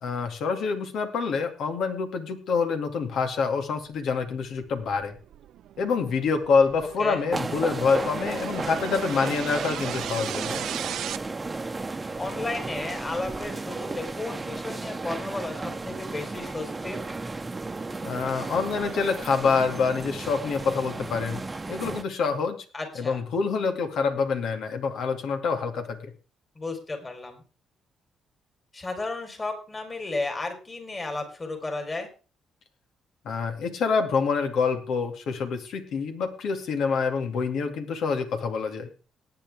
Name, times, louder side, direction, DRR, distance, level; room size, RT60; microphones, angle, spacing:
voice 1, 0.0-5.2 5.8-10.7 18.0-22.6 23.0-26.1 33.2-38.9, left 5 dB, 75° left, 7 dB, 2.3 m, -26 dB
sound 1, 4.3-11.2, right 11 dB, 75° right, 0.6 m, -38 dB
sound 2, 7.3-22.0, right 3 dB, 20° right, 1.0 m, -34 dB
voice 2, 12.2-17.0 22.7-23.2 26.6-27.4 28.7-32.1, left 2 dB, 25° left, 5 dB, 4.2 m, -33 dB
18.5 x 8.9 x 3.6 m, 0.34 s
cardioid pair, 90°, 0 cm